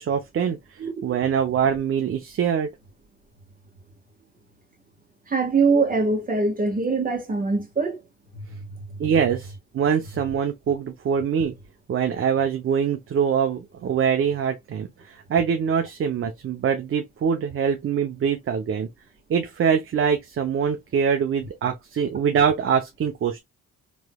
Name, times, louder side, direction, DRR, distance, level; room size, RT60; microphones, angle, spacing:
voice 1, 0.0-2.7 9.0-11.5 11.9-18.9 19.3-23.4, right 7 dB, 45° right, 0.6 m, -24 dB
voice 2, 5.3-8.0 8.3-8.4 8.9-9.0, right 4 dB, 30° right, 1.5 m, -23 dB
3.1 x 3.1 x 2.2 m
cardioid pair, 90°, 30 cm